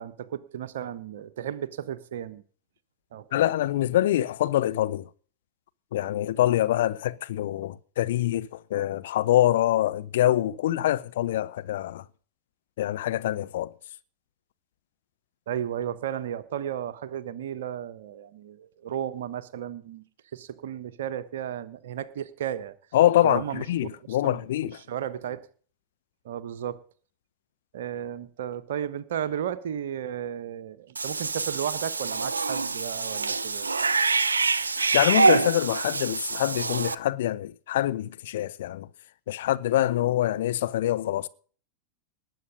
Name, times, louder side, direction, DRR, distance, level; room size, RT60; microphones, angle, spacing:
voice 1, 0.0-2.4 3.1-3.2 15.5-20.0 20.3-22.7 23.2-23.9 24.2-24.5 24.9-25.5 26.2-26.8 27.7-33.7, right 10 dB, 60° right, 1.2 m, -34 dB
voice 2, 3.3-5.1 5.9-12.0 12.8-13.7 22.9-24.8 34.9-38.9 39.3-41.3, left 13 dB, 55° left, 0.8 m, -25 dB
Cat / Bathtub (filling or washing), 31.0-37.0, right 4 dB, 75° right, 0.6 m, -25 dB
19.5 x 8.2 x 5.3 m
figure-of-eight pair, 90°, 0 cm